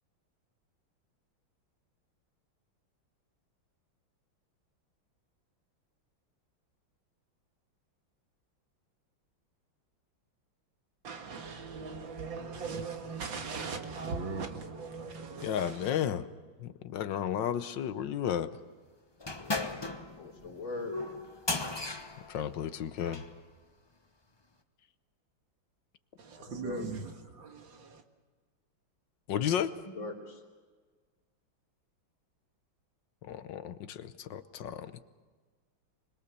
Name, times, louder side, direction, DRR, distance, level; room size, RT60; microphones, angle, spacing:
voice 1, 11.0-15.9 26.2-28.0, right 4 dB, 70° right, 2.4 m, -39 dB
voice 2, 15.4-16.3 16.6-18.5 22.3-23.2 29.3-29.7 33.2-34.9, left 9 dB, 70° left, 1.5 m, -33 dB
sound 1, 19.2-23.4, left 3 dB, 20° left, 0.7 m, -37 dB
voice 3, 19.4-21.1 26.4-26.9 29.9-30.4, left 3 dB, 90° left, 3.9 m, -41 dB
25.0 x 21.5 x 6.8 m
omnidirectional pair, 2.2 m